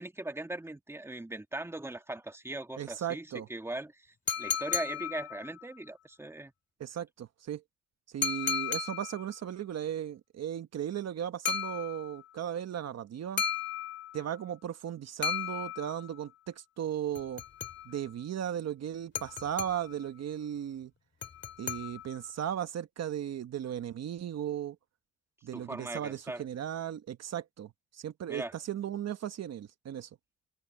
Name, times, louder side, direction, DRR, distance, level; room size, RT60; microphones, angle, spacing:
voice 1, 0.0-3.9 4.4-6.5 25.5-26.4 28.3-28.5, right 2 dB, 10° right, 1.8 m, -39 dB
voice 2, 2.8-3.5 6.8-7.6 8.1-13.4 14.1-17.4 17.8-20.9 21.6-24.8 25.4-30.1, right 10 dB, 60° right, 1.2 m, -36 dB
sound 1, 4.3-5.8 8.2-9.4 11.4-12.3 13.4-14.4 15.2-16.2 17.1-18.1 19.1-20.1 21.2-22.3, left 7 dB, 40° left, 2.1 m, -35 dB
cardioid pair, 90°, 30 cm